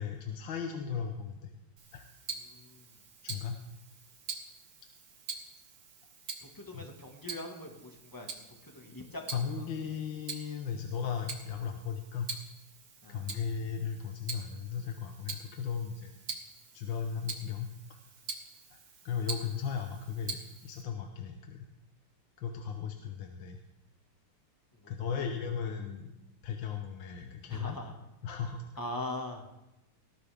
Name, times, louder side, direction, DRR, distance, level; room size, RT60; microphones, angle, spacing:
voice 1, 0.0-1.5 1.9-2.1 3.2-3.6 6.7-6.8 9.3-12.3 13.1-16.1 16.7-18.0 18.7-18.8 19.0-21.7 22.4-23.6 24.9-26.1 26.4-27.8 28.2-28.6, left 7 dB, 65° left, 4 dB, 1.6 m, -36 dB
Tick-tock, 1.8-20.8, right 5 dB, 50° right, 1.8 m, -45 dB
voice 2, 2.4-3.0 6.4-9.9 13.0-13.5 24.7-25.3 27.2-27.9 28.8-29.5, left 1 dB, 10° left, 1 dB, 1.6 m, -43 dB
19.0 x 13.5 x 3.5 m, 0.95 s
omnidirectional pair, 2.4 m